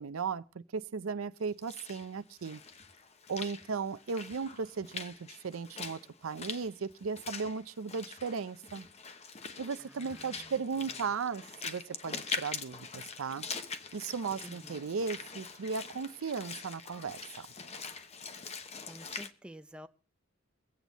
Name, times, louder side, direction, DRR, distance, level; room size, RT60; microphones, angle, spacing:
voice 1, 0.0-2.6 3.3-8.9 9.6-13.4 13.9-17.5, right 5 dB, 80° right, 0.5 m, -36 dB
Walk footsteps / Splash splatter, 1.4-19.3, left 5 dB, 30° left, 0.9 m, -43 dB
voice 2, 9.8-11.1 14.4-14.8 18.8-19.9, equal, 5° right, 0.5 m, -51 dB
23.5 x 8.2 x 4.0 m
head